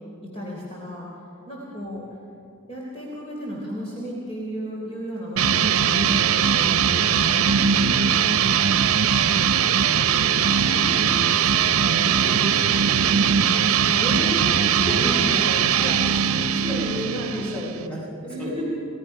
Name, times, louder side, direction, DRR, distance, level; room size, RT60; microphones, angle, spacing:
voice 1, 0.3-1.1 1.5-2.0 2.7-8.3 10.7-11.0 12.1-12.4 14.0-14.4 14.7-17.7 18.2-18.6, equal, 30° left, -4 dB, 3.7 m, -33 dB
sound 1, 5.4-17.9, right 7 dB, 75° right, 0.7 m, -20 dB
voice 2, 9.5-14.0 16.0-17.1 17.3-18.5, equal, 5° left, -5 dB, 6.5 m, -38 dB
29.5 x 17.5 x 5.8 m, 2.6 s
head